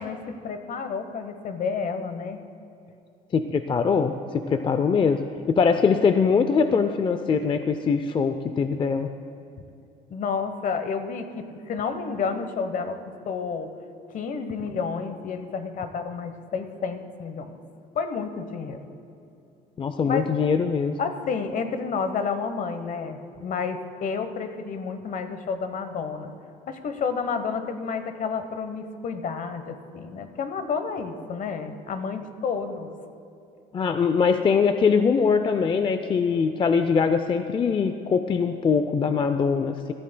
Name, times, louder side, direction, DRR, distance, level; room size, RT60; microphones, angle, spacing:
voice 1, 0.0-2.4 10.1-13.0 13.3-13.7 14.1-17.5 17.9-18.8 20.1-20.3 21.0-26.3 26.7-32.9, left 5 dB, 50° left, 9 dB, 1.0 m, -30 dB
voice 2, 3.3-5.2 5.5-9.1 19.8-20.9 33.7-39.9, left 5 dB, 30° left, 9 dB, 0.4 m, -22 dB
18.5 x 13.5 x 2.2 m, 2.6 s
cardioid pair, 110°, 17 cm